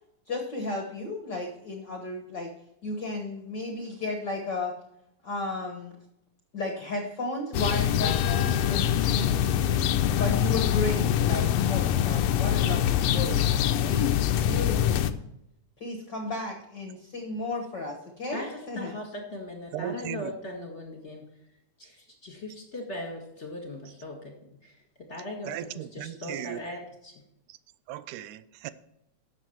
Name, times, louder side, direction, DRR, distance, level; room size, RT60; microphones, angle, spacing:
voice 1, 0.3-2.5 2.8-4.7 5.2-5.9 6.5-9.4 10.2-15.0 15.8-18.9, left 2 dB, 55° left, 1.3 m, -34 dB
sound 1, 7.5-15.1, left 10 dB, 80° left, 1.5 m, -24 dB
voice 2, 18.3-21.2 21.8-24.3 24.6-24.8 25.1-27.1, left 1 dB, 25° left, 1.7 m, -39 dB
voice 3, 19.7-20.3 25.5-26.6 27.9-28.7, right 12 dB, 85° right, 2.1 m, -36 dB
12.0 x 7.3 x 4.5 m
omnidirectional pair, 3.5 m